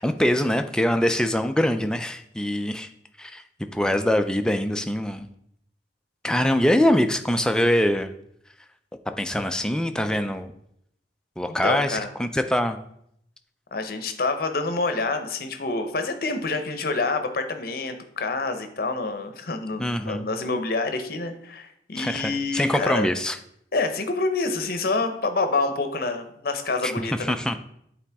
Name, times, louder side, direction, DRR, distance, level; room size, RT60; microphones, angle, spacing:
voice 1, 0.0-2.9 3.2-3.4 3.7-5.3 6.2-8.1 9.1-10.5 11.4-12.8 19.8-20.3 22.0-23.4 26.8-26.9 27.3-27.6, left 1 dB, 5° left, 7 dB, 0.3 m, -23 dB
voice 2, 11.6-12.1 13.7-23.1 23.7-27.3, left 3 dB, 55° left, 7 dB, 0.7 m, -27 dB
8.5 x 4.0 x 3.4 m, 0.72 s
head